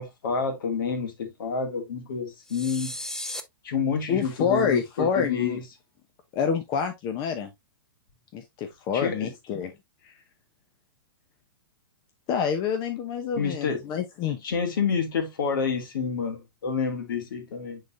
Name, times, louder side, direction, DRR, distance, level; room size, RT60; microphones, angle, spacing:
voice 1, 0.0-3.0 3.6-5.6 8.9-9.3 13.3-13.8 14.4-17.8, left 5 dB, 65° left, 2.4 m, -28 dB
sound 1, 2.5-3.4, left 1 dB, 5° left, 0.7 m, -35 dB
voice 2, 4.1-5.6 6.3-7.5 8.3-9.7 10.0-10.1 12.3-14.4, left 7 dB, 35° left, 1.0 m, -27 dB
9.3 x 4.0 x 2.6 m
hypercardioid pair, 115°, 12 cm